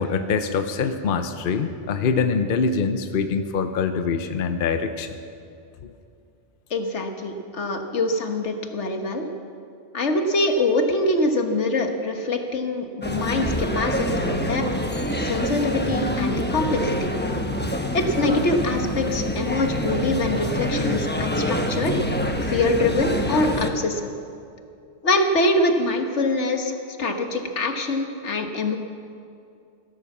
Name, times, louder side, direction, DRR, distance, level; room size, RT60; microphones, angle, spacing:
voice 1, 0.0-5.2, left 5 dB, 55° left, 8 dB, 0.9 m, -24 dB
voice 2, 6.7-9.3 9.9-14.6 15.2-17.1 17.9-22.0 22.4-24.1 25.0-28.8, left 2 dB, 85° left, 5 dB, 1.6 m, -24 dB
sound 1, 13.0-23.7, equal, 10° left, 0.9 m, -26 dB
15.5 x 12.5 x 7.2 m, 2.5 s
omnidirectional pair, 1.2 m